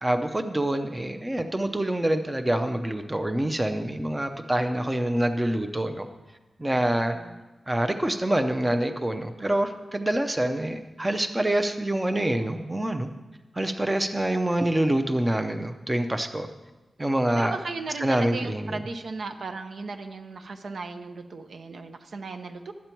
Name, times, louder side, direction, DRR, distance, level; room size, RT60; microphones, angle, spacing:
voice 1, 0.0-6.1 6.6-7.2 7.7-13.1 13.6-16.5 17.0-17.5 18.0-18.8, right 1 dB, 15° right, 6 dB, 0.5 m, -26 dB
voice 2, 7.1-7.4 17.3-22.7, right 4 dB, 70° right, 6 dB, 0.7 m, -36 dB
12.5 x 8.3 x 4.5 m, 1.1 s
wide cardioid pair, 160°, 0 cm